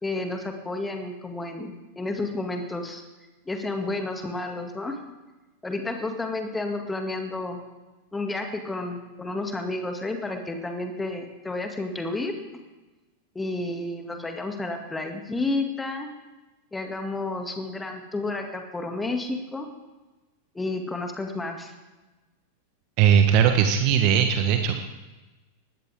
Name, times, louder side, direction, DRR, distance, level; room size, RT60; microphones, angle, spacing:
voice 1, 0.0-3.0 3.5-5.0 5.6-7.6 8.1-12.3 13.3-16.1 16.7-19.7 20.5-21.7, left 2 dB, 10° left, 4 dB, 2.3 m, -31 dB
voice 2, 23.0-24.8, right 8 dB, 40° right, 6 dB, 1.2 m, -19 dB
20.0 x 17.0 x 3.6 m, 1.2 s
figure-of-eight pair, 90°, 0 cm